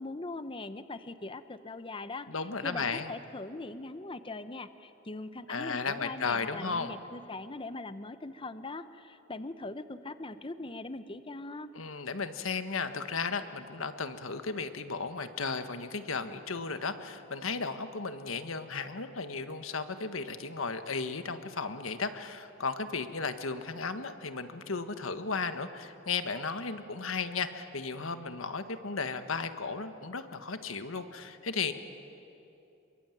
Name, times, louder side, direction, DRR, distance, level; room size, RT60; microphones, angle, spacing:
voice 1, 0.0-11.7, left 2 dB, 25° left, 12 dB, 0.8 m, -41 dB
voice 2, 2.3-3.1 5.5-6.9 11.7-31.7, left 4 dB, 85° left, 9 dB, 1.5 m, -35 dB
27.0 x 23.0 x 9.2 m, 2.9 s
head